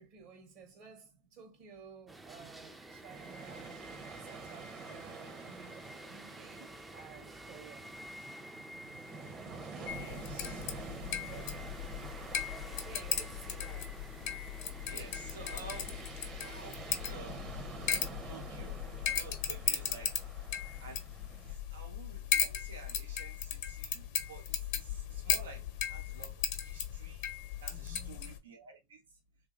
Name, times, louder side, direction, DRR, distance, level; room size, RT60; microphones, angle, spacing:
voice 1, 0.0-3.8 4.2-7.9 11.3-12.1 12.8-14.0 27.9-28.4, right 6 dB, 55° right, 1.1 m, -54 dB
sound 1, 2.1-17.2, right 1 dB, 10° right, 0.4 m, -51 dB
sound 2, 3.1-21.5, right 4 dB, 35° right, 0.8 m, -48 dB
sound 3, 9.9-28.4, left 9 dB, 60° left, 0.7 m, -37 dB
voice 2, 9.9-10.7 14.9-16.1 16.4-17.5 18.3-18.8 19.1-20.3 20.8-21.0 21.4-27.3 27.6-29.2, right 4 dB, 90° right, 0.5 m, -51 dB
2.9 x 2.6 x 2.4 m
hypercardioid pair, 100°, 0 cm